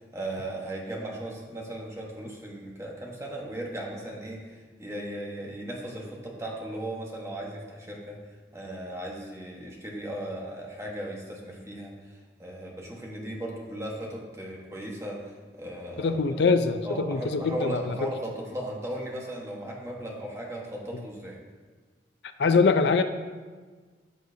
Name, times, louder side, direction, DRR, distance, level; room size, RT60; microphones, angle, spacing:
voice 1, 0.0-8.2 8.5-16.2 16.8-21.4, right 1 dB, 15° right, -2 dB, 1.3 m, -37 dB
voice 2, 16.0-18.1 22.4-23.0, left 4 dB, 70° left, 9 dB, 0.4 m, -23 dB
13.0 x 6.4 x 2.7 m, 1.4 s
head